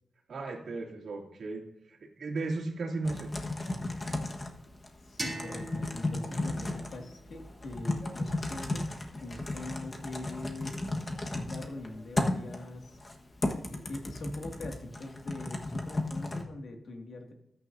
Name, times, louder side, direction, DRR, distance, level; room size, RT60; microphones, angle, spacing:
voice 1, 0.3-1.6 1.9-3.3, right 3 dB, 70° right, 0 dB, 2.6 m, -35 dB
Typing, 3.0-16.4, left 2 dB, 25° left, 1.4 m, -35 dB
voice 2, 5.0-9.0 9.2-10.8 11.2-13.0 13.7-17.3, left 2 dB, 60° left, 3 dB, 2.1 m, -42 dB
sound 1, 5.2-8.0, right 1 dB, 10° right, 3.3 m, -43 dB
20.0 x 9.5 x 2.7 m, 0.88 s
wide cardioid pair, 125°, 0 cm